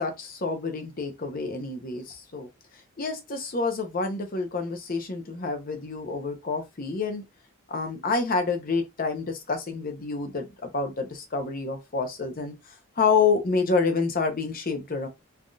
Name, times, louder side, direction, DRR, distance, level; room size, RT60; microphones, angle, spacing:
voice 1, 0.0-2.5 3.0-7.2 7.7-12.5 13.0-15.1, left 4 dB, 40° left, 0.6 m, -28 dB
3.4 x 2.6 x 2.2 m
head